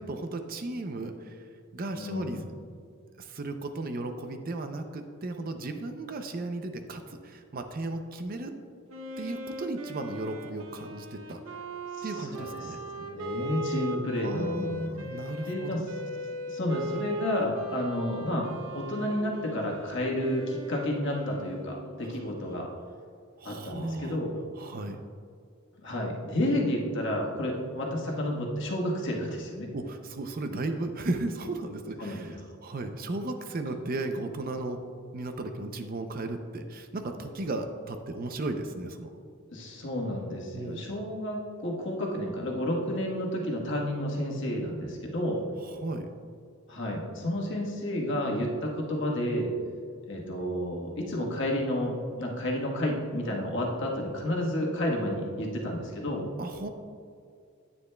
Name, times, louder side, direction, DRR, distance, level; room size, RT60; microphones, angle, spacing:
voice 1, 0.0-1.5 1.7-2.4 3.2-8.5 9.2-11.6 12.0-12.8 14.2-15.9 23.4-24.2 24.6-25.0 29.7-34.8 35.1-39.1 40.5-40.9 45.6-46.1 56.4-56.7, right 2 dB, 40° right, 6 dB, 0.5 m, -35 dB
voice 2, 1.9-2.4 12.0-12.7 13.0-14.8 15.5-15.8 16.5-22.7 23.4-24.3 25.8-29.7 32.0-32.3 39.5-45.4 46.7-49.5 50.1-56.2, left 1 dB, 55° left, -1 dB, 1.4 m, -31 dB
Wind instrument woodwind instrument, 8.9-22.3, equal, 70° right, 0.8 m, -39 dB
9.8 x 9.4 x 2.2 m, 2.3 s
head